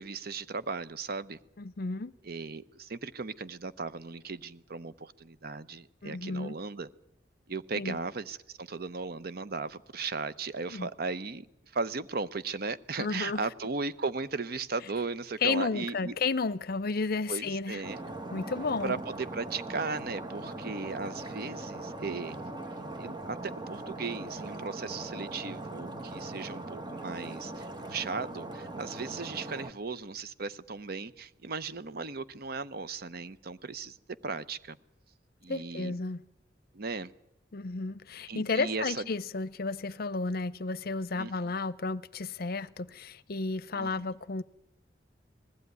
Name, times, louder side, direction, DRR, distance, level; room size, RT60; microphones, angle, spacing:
voice 1, 0.0-1.4 2.2-6.9 7.5-11.5 11.7-16.2 17.3-18.0 18.8-22.4 23.0-34.0 34.2-34.8 35.4-35.9 36.7-37.1 38.3-39.1 41.1-41.3 43.7-44.1, right 4 dB, 60° right, 0.8 m, -36 dB
voice 2, 1.6-2.1 6.0-6.6 7.8-8.0 10.7-10.9 13.0-13.4 15.4-17.8 18.3-18.9 35.5-36.2 37.5-44.4, left 4 dB, 60° left, 0.7 m, -32 dB
Stream, 17.8-29.7, right 2 dB, 25° right, 1.3 m, -40 dB
20.0 x 15.0 x 9.4 m
head